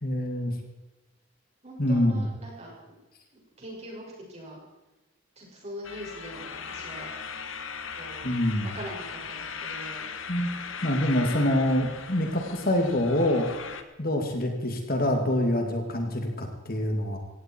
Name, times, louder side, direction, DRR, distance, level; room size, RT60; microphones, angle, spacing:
voice 1, 0.0-0.5 1.8-2.2 8.2-8.7 10.3-10.5 10.8-13.5 14.0-17.2, left 1 dB, 45° left, 3 dB, 2.4 m, -25 dB
voice 2, 1.6-3.0 3.6-4.6 5.4-7.1 8.0-8.3 8.6-10.0 11.1-11.5 14.1-14.3, equal, 30° right, -2 dB, 6.2 m, -42 dB
sound 1, 5.8-13.8, left 6 dB, 75° left, 1.4 m, -38 dB
18.0 x 16.5 x 4.6 m, 1.1 s
head